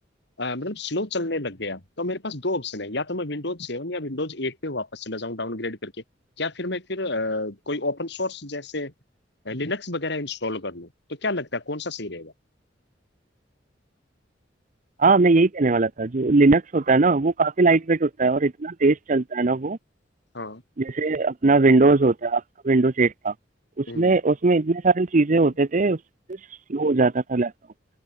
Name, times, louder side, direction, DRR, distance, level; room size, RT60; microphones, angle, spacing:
voice 1, 0.4-5.9 6.4-8.9 9.4-12.3 20.3-20.6 23.9-24.1, left 2 dB, 65° left, 4.0 m, -30 dB
voice 2, 15.0-19.8 20.8-23.3 23.8-26.0 26.7-27.5, right 3 dB, 45° right, 0.7 m, -20 dB
open air
head